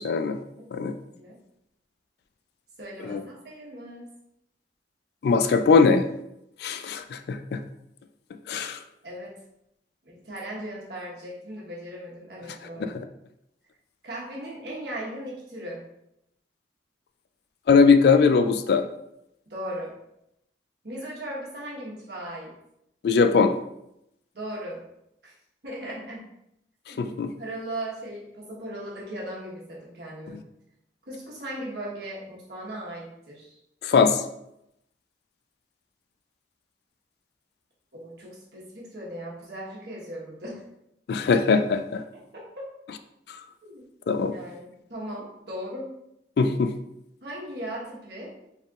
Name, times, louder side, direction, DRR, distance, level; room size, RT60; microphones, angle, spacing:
voice 1, 0.0-0.4 0.7-0.9 3.0-3.2 5.2-6.0 6.6-7.6 8.5-8.8 17.7-18.8 23.0-23.5 27.0-27.3 33.8-34.2 41.1-42.0 44.1-44.3 46.4-46.7, left 5 dB, 60° left, 8 dB, 0.3 m, -20 dB
voice 2, 2.8-4.1 9.0-9.4 10.0-13.0 14.0-15.9 19.5-19.9 20.8-22.5 24.3-24.8 25.2-25.3 25.6-26.3 26.9-30.4 31.1-33.6 37.9-40.6 41.9-42.7 43.6-43.8 44.3-45.9 47.2-48.3, right 1 dB, 60° right, -4 dB, 1.3 m, -38 dB
4.2 x 3.5 x 2.4 m, 0.81 s
head